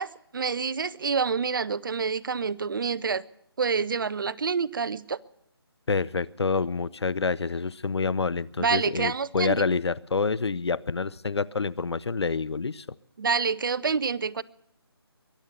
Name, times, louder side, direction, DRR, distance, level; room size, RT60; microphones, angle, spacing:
voice 1, 0.0-3.2 3.6-5.2 8.6-9.6 13.2-14.4, right 5 dB, 55° right, 21 dB, 0.5 m, -27 dB
voice 2, 5.9-12.9, left 4 dB, 85° left, 21 dB, 0.6 m, -27 dB
22.0 x 8.2 x 6.9 m, 0.75 s
figure-of-eight pair, 160°, 14 cm